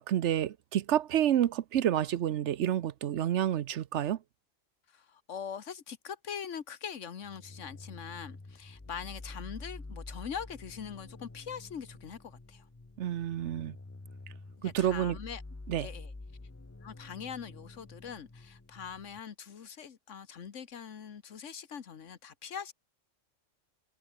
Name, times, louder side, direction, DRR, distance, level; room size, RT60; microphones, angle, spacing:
voice 1, 0.0-4.2 13.0-13.8 14.6-15.2 15.7-15.9, right 11 dB, 75° right, 1.0 m, -29 dB
voice 2, 4.9-12.7 14.6-15.4 15.8-16.1 16.8-22.7, left 7 dB, 80° left, 1.6 m, -42 dB
sound 1, 7.2-19.2, left 2 dB, 15° left, 0.7 m, -48 dB
omnidirectional pair, 1.3 m